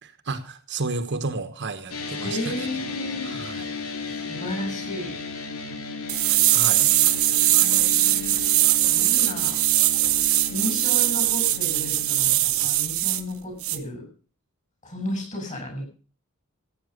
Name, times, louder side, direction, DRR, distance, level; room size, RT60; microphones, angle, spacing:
voice 1, 0.0-2.8 3.2-3.7 6.5-6.9, right 3 dB, 55° right, 9 dB, 1.3 m, -32 dB
sound 1, 1.9-12.4, left 4 dB, 90° left, 2.6 m, -35 dB
voice 2, 2.2-3.3 4.2-5.1 7.4-8.6 8.9-9.6 10.5-14.0 14.8-15.9, left 1 dB, 35° left, 3 dB, 7.4 m, -33 dB
sound 2, 6.1-13.2 13.6-13.8, right 14 dB, 75° right, 1.2 m, -21 dB
15.0 x 9.0 x 6.6 m, 0.39 s
head